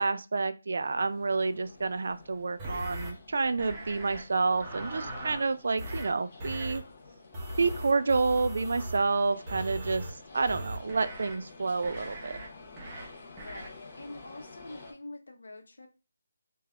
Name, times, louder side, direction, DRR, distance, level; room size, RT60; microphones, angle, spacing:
voice 1, 0.0-6.8 7.6-10.1 10.3-12.4, right 4 dB, 60° right, 11 dB, 0.3 m, -29 dB
sound 1, 0.8-14.9, left 3 dB, 35° left, 0.7 m, -50 dB
sound 2, 2.6-3.1 3.6-4.2 4.5-5.5 5.8-6.1 6.4-6.8 7.3-9.0 9.5-10.1 10.5-11.4 11.8-12.5 12.8-13.1 13.4-13.7, right 1 dB, 15° right, 0.6 m, -39 dB
voice 2, 13.3-15.9, left 2 dB, 80° left, 5 dB, 0.7 m, -45 dB
3.3 x 2.2 x 2.4 m, 0.30 s
hypercardioid pair, 170°, 0 cm